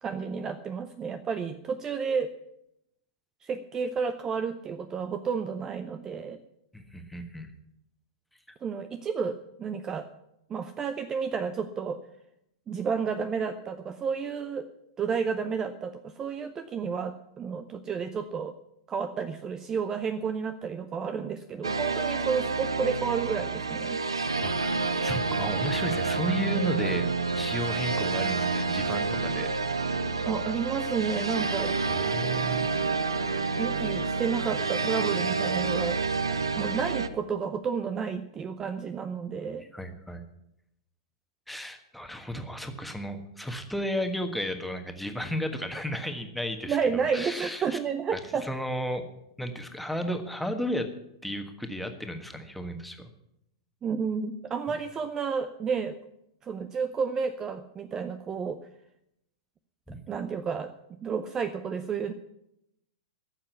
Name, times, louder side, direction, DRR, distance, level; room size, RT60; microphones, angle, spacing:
voice 1, 0.0-2.3 3.4-6.4 8.6-10.1 10.5-12.0 12.7-14.7 15.0-18.6 18.9-24.0 30.2-31.8 33.6-36.0 36.5-39.6 46.7-48.6 53.8-56.0 56.4-58.6 60.1-60.7 61.0-62.1, right 6 dB, 20° right, 10 dB, 0.6 m, -31 dB
voice 2, 6.7-7.5 24.4-29.5 31.9-32.8 39.6-40.2 41.5-47.8 48.1-49.0 49.4-50.9 51.2-53.1 59.9-60.0, equal, ahead, 5 dB, 1.4 m, -34 dB
sound 1, 21.6-37.1, right 4 dB, 75° right, 0.8 m, -29 dB
14.0 x 7.5 x 8.2 m, 0.82 s
figure-of-eight pair, 95°, 2 cm